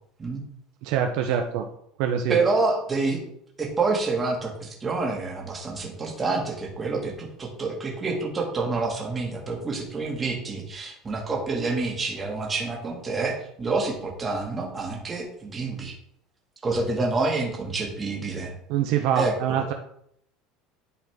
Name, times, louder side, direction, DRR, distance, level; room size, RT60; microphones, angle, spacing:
voice 1, 0.8-1.6 2.0-2.4 18.7-19.7, right 8 dB, 65° right, 4 dB, 0.7 m, -24 dB
voice 2, 2.3-3.2 3.6-16.0 16.6-18.5 19.2-19.7, right 3 dB, 20° right, -1 dB, 1.8 m, -28 dB
11.0 x 4.0 x 3.5 m, 0.70 s
cardioid pair, 145°, 0 cm